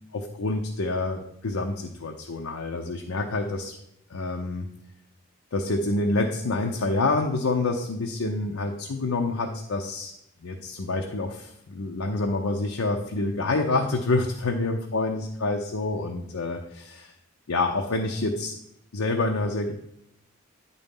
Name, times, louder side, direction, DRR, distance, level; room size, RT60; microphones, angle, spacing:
voice 1, 0.1-3.8 4.1-4.7 5.5-10.1 10.4-17.1 17.5-18.6 18.9-19.7, left 2 dB, 85° left, 2 dB, 0.7 m, -27 dB
8.8 x 4.3 x 5.3 m, 0.78 s
head